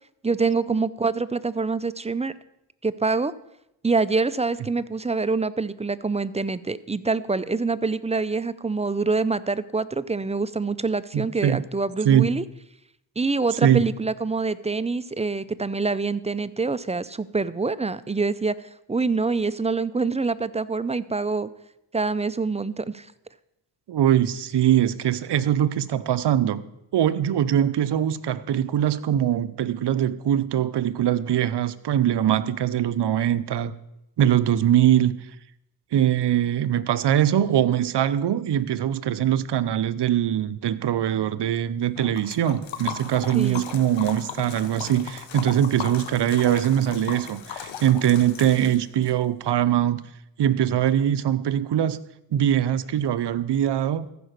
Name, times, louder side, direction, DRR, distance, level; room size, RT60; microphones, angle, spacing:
voice 1, 0.2-2.3 2.8-3.3 3.8-12.4 13.2-18.6 18.9-21.5 21.9-23.1 43.3-43.6, right 4 dB, 15° right, 16 dB, 0.4 m, -25 dB
voice 2, 11.1-11.6 12.0-12.3 13.6-13.8 23.9-26.6 26.9-33.7 34.2-35.1 35.9-50.0 50.4-52.0 52.3-54.1, right 10 dB, 65° right, 14 dB, 0.7 m, -22 dB
Liquid, 42.0-49.1, left 8 dB, 90° left, 1.0 m, -37 dB
14.5 x 5.0 x 6.6 m, 0.84 s
cardioid pair, 55°, 45 cm